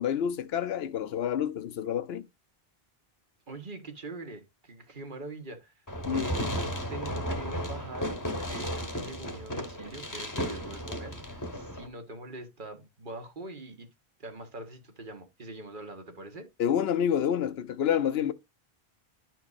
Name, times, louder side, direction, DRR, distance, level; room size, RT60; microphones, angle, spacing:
voice 1, 0.0-2.3 6.1-6.3 16.6-18.3, left 9 dB, 80° left, 0.9 m, -28 dB
voice 2, 3.5-5.7 6.1-13.9 14.2-16.5, right 2 dB, 55° right, 1.3 m, -43 dB
Fireworks, 5.9-11.9, equal, 20° left, 0.9 m, -34 dB
10.5 x 4.5 x 2.4 m
omnidirectional pair, 1.0 m